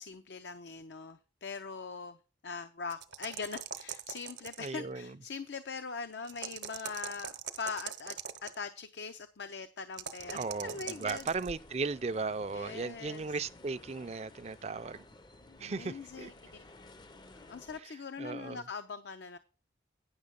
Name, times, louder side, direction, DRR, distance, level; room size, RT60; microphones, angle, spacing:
voice 1, 0.0-2.2 2.4-8.2 8.4-11.3 12.5-13.3 15.6-16.6 17.3-19.4, left 5 dB, 70° left, 0.6 m, -42 dB
sound 1, 2.9-4.8 6.2-8.6 9.9-11.5, right 8 dB, 75° right, 0.8 m, -41 dB
voice 2, 4.6-5.2 10.3-15.0 15.6-16.3 17.8-18.7, right 4 dB, 35° right, 0.4 m, -37 dB
sound 2, 10.2-17.8, left 2 dB, 25° left, 0.5 m, -54 dB
9.7 x 6.3 x 5.2 m
head